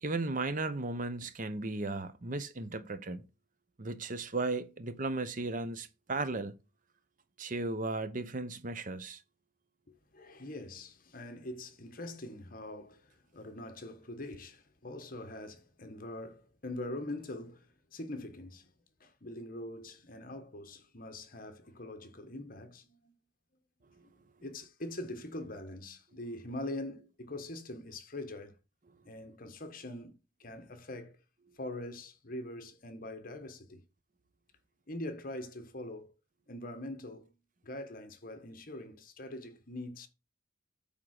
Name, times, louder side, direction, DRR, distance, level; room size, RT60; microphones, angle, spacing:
voice 1, 0.0-3.2 3.8-6.5 7.4-9.2, right 3 dB, 40° right, 0.8 m, -35 dB
voice 2, 9.9-18.7 19.0-23.1 24.0-24.1 24.4-28.5 29.0-30.1 30.4-31.2 31.6-33.8 34.9-36.1 36.5-37.3 37.6-40.1, left 1 dB, 45° left, 1.2 m, -43 dB
8.6 x 3.7 x 6.4 m
head